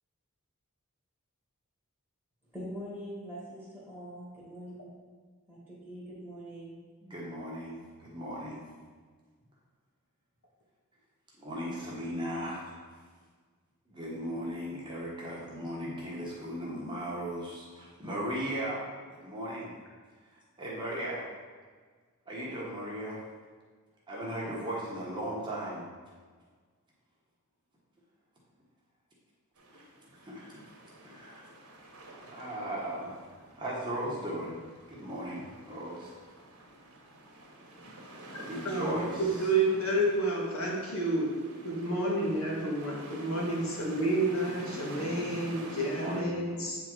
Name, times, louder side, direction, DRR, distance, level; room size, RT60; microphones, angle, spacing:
voice 1, 2.5-4.9 5.5-6.8, equal, ahead, -8 dB, 1.6 m, -43 dB
voice 2, 7.0-8.7 11.4-12.7 13.9-19.7 20.6-21.3 22.3-23.2 24.1-25.8 29.7-29.8 30.2-30.6 31.0-31.4 32.3-33.1 33.6-34.6 34.9-36.1 38.4-39.5 46.0-46.6, right 1 dB, 20° right, -6 dB, 1.2 m, -37 dB
sound 1, 29.6-46.2, right 1 dB, 75° right, 1.2 m, -48 dB
voice 3, 38.6-41.3 41.6-46.8, right 1 dB, 65° left, -4 dB, 1.9 m, -30 dB
8.4 x 3.7 x 4.6 m, 1.5 s
head